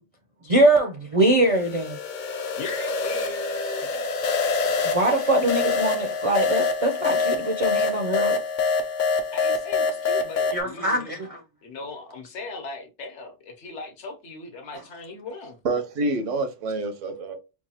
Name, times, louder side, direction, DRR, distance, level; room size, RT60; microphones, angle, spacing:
voice 1, 0.5-2.0 4.8-8.4 10.5-11.4, right 1 dB, 50° right, 0.4 m, -22 dB
sound 1, 1.5-10.6, left 4 dB, 50° left, 0.6 m, -26 dB
voice 2, 2.6-4.1 9.3-11.2 11.6-15.6, left 4 dB, 70° left, 1.1 m, -38 dB
voice 3, 15.6-17.4, right 2 dB, 80° right, 1.1 m, -27 dB
4.5 x 2.3 x 2.8 m
omnidirectional pair, 1.2 m